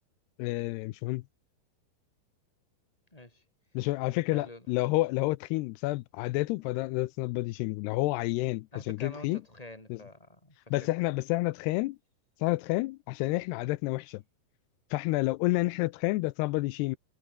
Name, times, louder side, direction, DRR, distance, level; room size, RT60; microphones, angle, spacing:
voice 1, 0.4-1.2 3.7-9.4 9.9-10.0 10.7-12.0 12.4-14.2 14.9-17.0, left 20 dB, 85° left, 2.7 m, -29 dB
voice 2, 3.1-3.4 4.3-4.6 8.7-10.7, left 2 dB, 10° left, 5.4 m, -46 dB
omnidirectional pair, 4.8 m